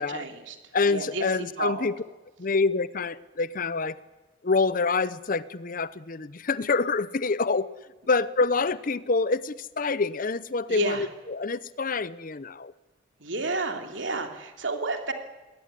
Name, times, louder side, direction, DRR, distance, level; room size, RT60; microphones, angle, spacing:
voice 1, 0.0-0.5 0.9-1.9 10.7-11.1 13.2-15.1, right 3 dB, 70° right, 5 dB, 3.0 m, -31 dB
voice 2, 0.7-2.0 2.4-4.0 4.4-7.7 8.1-12.7, left 4 dB, 45° left, 17 dB, 0.7 m, -26 dB
21.0 x 18.5 x 9.8 m, 1.2 s
head